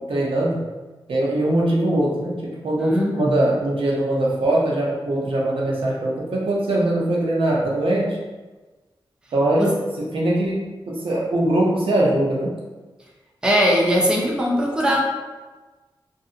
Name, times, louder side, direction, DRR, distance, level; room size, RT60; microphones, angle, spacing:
voice 1, 0.1-0.6 1.1-2.3 2.6-8.2 9.3-9.7 10.0-12.5, right 1 dB, 80° right, -4 dB, 0.6 m, -21 dB
voice 2, 2.8-3.4 9.6-9.7 13.4-15.0, equal, 10° right, -2 dB, 0.4 m, -20 dB
2.6 x 2.5 x 2.4 m, 1.2 s
wide cardioid pair, 135°, 9 cm